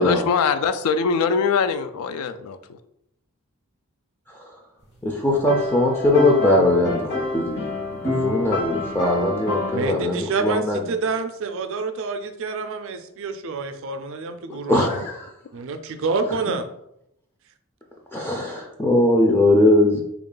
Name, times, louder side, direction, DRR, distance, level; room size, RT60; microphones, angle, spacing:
voice 1, 0.0-2.8 14.7-14.9, left 5 dB, 90° left, 11 dB, 0.4 m, -23 dB
voice 2, 5.0-7.7 8.0-10.8 14.7-15.3 18.1-20.0, left 1 dB, 10° left, -1 dB, 0.3 m, -20 dB
sound 1, 5.3-9.9, left 2 dB, 50° left, 0.9 m, -27 dB
voice 3, 9.7-15.1 15.5-16.7, right 4 dB, 60° right, 8 dB, 0.4 m, -28 dB
3.5 x 2.4 x 3.7 m, 0.79 s
head